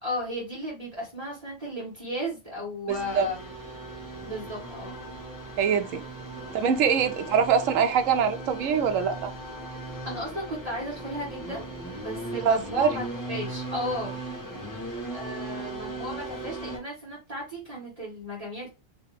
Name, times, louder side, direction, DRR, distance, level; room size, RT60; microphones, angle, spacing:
voice 1, 0.0-3.5 4.2-5.0 6.9-7.0 7.3-7.4 9.8-11.7 12.0-14.2 15.1-18.7, left 1 dB, 30° right, 1.5 m, -35 dB
sound 1, 2.9-16.8, right 2 dB, 15° left, 0.9 m, -38 dB
voice 2, 2.9-3.3 5.6-6.0 6.5-9.3 12.3-13.0, right 7 dB, 80° right, 1.0 m, -24 dB
3.3 x 2.8 x 3.1 m
omnidirectional pair, 1.3 m